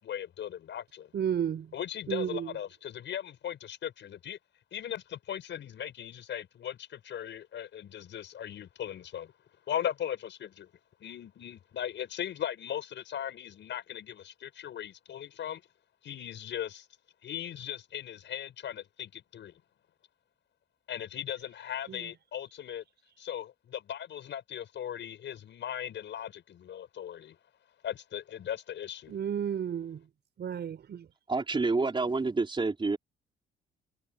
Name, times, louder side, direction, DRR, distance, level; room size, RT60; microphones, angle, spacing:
voice 1, 0.0-1.1 1.7-4.4 4.7-9.3 9.7-10.7 11.0-15.6 16.0-16.9 17.2-19.6 20.9-22.8 23.2-27.4 27.8-29.1, left 10 dB, 65° left, 6.0 m, -38 dB
voice 2, 1.1-1.7 2.1-2.5 21.9-22.1 29.1-30.1 30.4-31.1, right 8 dB, 60° right, 5.4 m, -32 dB
voice 3, 31.3-33.0, right 3 dB, 25° right, 4.1 m, -28 dB
cardioid pair, 90°, 20 cm